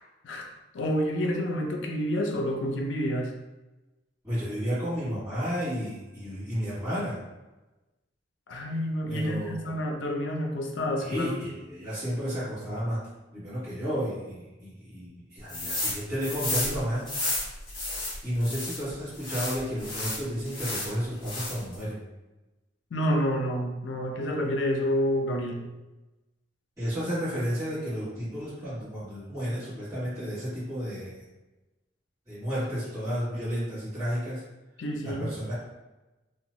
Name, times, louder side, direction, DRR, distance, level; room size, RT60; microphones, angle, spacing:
voice 1, 0.2-3.3 8.5-11.3 22.9-25.6 34.8-35.3, equal, 85° left, 2 dB, 0.4 m, -29 dB
voice 2, 4.2-7.2 9.0-9.7 11.0-13.0 13.3-17.1 18.2-22.0 26.8-31.2 32.3-34.4 35.0-35.5, equal, 20° right, -15 dB, 1.3 m, -32 dB
sound 1, 15.5-16.0 16.2-18.8 19.2-20.9 21.2-21.7, left 2 dB, 25° left, 1.1 m, -32 dB
2.7 x 2.1 x 3.0 m, 1.1 s
head